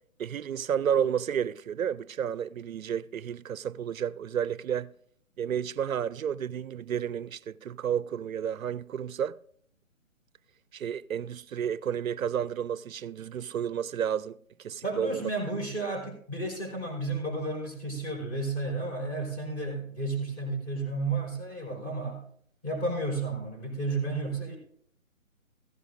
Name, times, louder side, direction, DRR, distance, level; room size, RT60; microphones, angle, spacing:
voice 1, 0.2-4.9 5.4-9.4 10.7-15.3, right 8 dB, 75° right, 0.5 m, -31 dB
voice 2, 14.8-22.2 22.6-24.6, right 2 dB, 20° left, 4.5 m, -32 dB
15.0 x 15.0 x 2.6 m
figure-of-eight pair, 145°, 41 cm